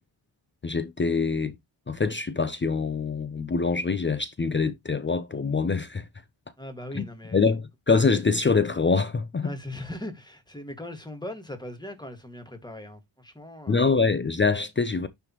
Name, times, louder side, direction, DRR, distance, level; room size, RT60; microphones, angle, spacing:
voice 1, 0.6-1.6 1.9-6.1 6.9-7.0 7.3-9.5 13.7-15.1, left 4 dB, 25° left, 0.6 m, -24 dB
voice 2, 6.6-7.4 9.4-13.9, left 1 dB, 10° left, 1.8 m, -39 dB
9.8 x 3.5 x 3.0 m
cardioid pair, 95°, 46 cm